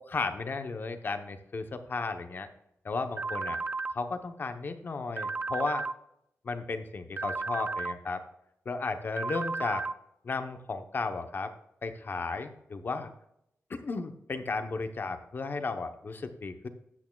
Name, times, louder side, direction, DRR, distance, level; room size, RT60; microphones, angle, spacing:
voice 1, 0.0-2.5 2.8-3.6 3.9-5.8 6.4-8.2 8.6-9.9 10.2-11.5 11.8-13.1 13.7-16.7, left 4 dB, 40° left, 8 dB, 0.8 m, -34 dB
sound 1, 3.2-3.9 5.2-5.9 7.2-7.9 9.2-9.9, right 3 dB, 35° right, 0.4 m, -33 dB
13.5 x 8.5 x 2.3 m, 0.79 s
wide cardioid pair, 175°, 5 cm